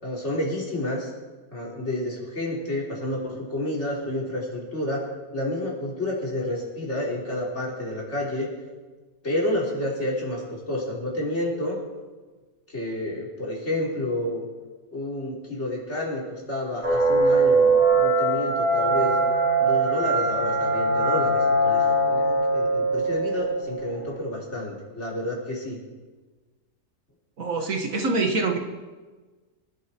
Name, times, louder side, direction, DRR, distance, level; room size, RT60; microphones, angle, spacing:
voice 1, 0.0-1.1 1.5-5.1 5.3-8.5 9.2-11.8 12.7-14.5 14.9-19.2 19.6-21.3 21.6-25.8, left 1 dB, 45° left, -4 dB, 4.1 m, -30 dB
sound 1, 16.8-24.2, right 2 dB, 90° right, 6.7 m, -22 dB
voice 2, 27.4-28.6, right 3 dB, 55° right, 3 dB, 1.8 m, -25 dB
24.5 x 11.0 x 4.5 m, 1.3 s
omnidirectional pair, 1.7 m